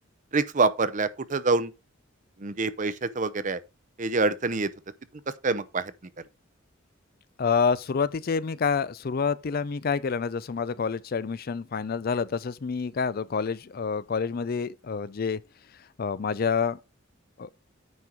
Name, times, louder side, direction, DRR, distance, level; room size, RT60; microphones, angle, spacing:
voice 1, 0.3-1.7 2.4-3.6 4.0-4.7 5.4-5.9, right 3 dB, 40° right, 0.7 m, -26 dB
voice 2, 7.4-15.4 16.0-16.8 17.4-17.5, left 5 dB, 45° left, 0.4 m, -28 dB
9.6 x 4.5 x 5.0 m
head